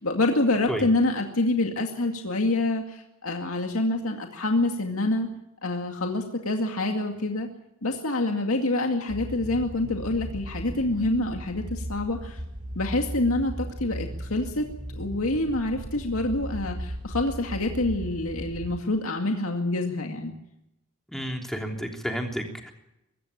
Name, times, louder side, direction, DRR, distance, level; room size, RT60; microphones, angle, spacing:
voice 1, 0.0-5.3 5.6-7.5 7.8-12.4 12.8-14.6 15.0-20.3, left 2 dB, 80° left, 3 dB, 2.3 m, -26 dB
sound 1, 9.1-18.8, equal, 35° right, 2.5 m, -37 dB
voice 2, 21.1-22.7, equal, ahead, 2 dB, 3.3 m, -31 dB
23.5 x 14.0 x 8.8 m, 0.87 s
head